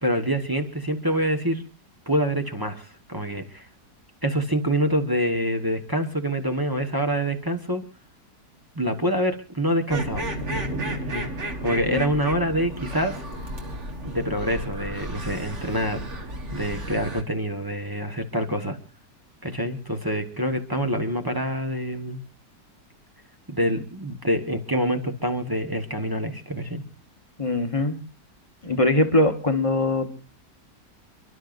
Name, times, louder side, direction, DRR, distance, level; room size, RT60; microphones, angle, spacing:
voice 1, 0.0-1.6 2.1-3.7 4.2-7.8 8.7-10.3 11.1-11.3 11.6-13.2 14.0-18.8 19.4-22.2 23.5-26.8, equal, 15° right, 5 dB, 1.1 m, -26 dB
sound 1, 9.9-17.2, right 1 dB, 40° right, 2.1 m, -33 dB
voice 2, 27.4-28.0 28.6-30.1, left 2 dB, 20° left, 6 dB, 1.3 m, -22 dB
30.0 x 12.0 x 2.6 m, 0.34 s
omnidirectional pair, 1.9 m